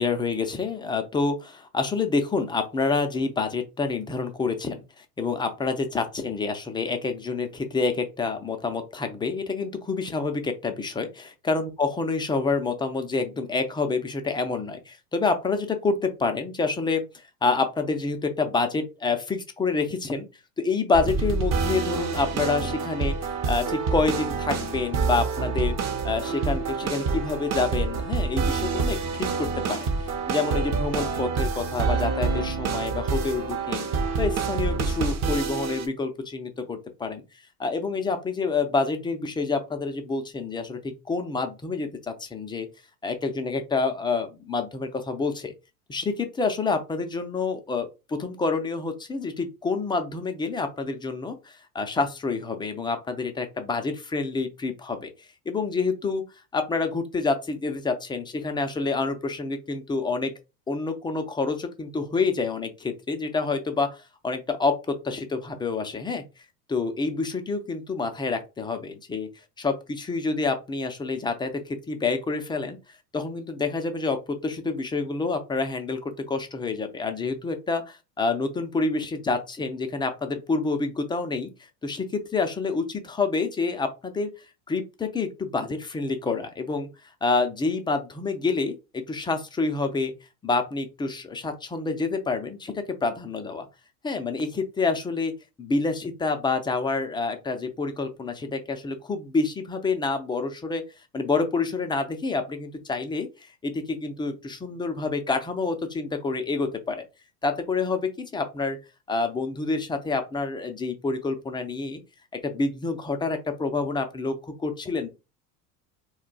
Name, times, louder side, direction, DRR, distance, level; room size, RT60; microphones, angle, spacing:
voice 1, 0.0-17.1 17.4-20.3 20.6-25.7 26.0-29.9 30.3-33.9 34.2-37.2 37.6-42.7 43.0-45.5 45.9-55.1 55.5-56.2 56.5-60.3 60.7-66.2 66.7-69.3 69.6-72.8 73.1-81.5 81.8-84.3 84.7-86.9 87.2-90.1 90.4-93.7 94.0-100.8 101.1-103.3 103.6-107.0 107.4-108.8 109.1-112.0 112.4-115.1, left 4 dB, 10° left, 6 dB, 0.3 m, -28 dB
sound 1, 20.9-35.9, right 4 dB, 35° right, 0.7 m, -27 dB
2.2 x 2.2 x 3.8 m, 0.27 s
hypercardioid pair, 95°, 45 cm